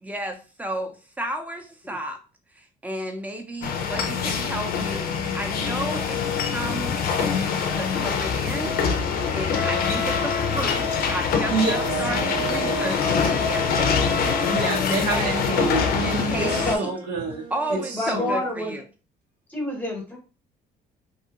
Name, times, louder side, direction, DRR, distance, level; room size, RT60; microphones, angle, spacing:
voice 1, 0.0-2.2 2.5-6.2 6.5-14.4 15.1-15.3 16.0-16.9 17.5-18.8, right 1 dB, 10° right, 4 dB, 0.6 m, -33 dB
sound 1, 3.6-16.8, left 5 dB, 60° left, 0.5 m, -24 dB
voice 2, 9.6-10.0 13.1-13.3 13.6-13.7 16.7-16.8 17.9-18.7 19.5-20.2, left 1 dB, 10° left, 1 dB, 1.0 m, -29 dB
Wind instrument woodwind instrument, 10.2-18.7, right 2 dB, 60° right, 1.1 m, -42 dB
voice 3, 11.5-11.9 14.5-17.4 17.7-18.3, right 3 dB, 85° right, 0 dB, 1.1 m, -27 dB
2.6 x 2.3 x 2.8 m, 0.34 s
cardioid pair, 110°, 17 cm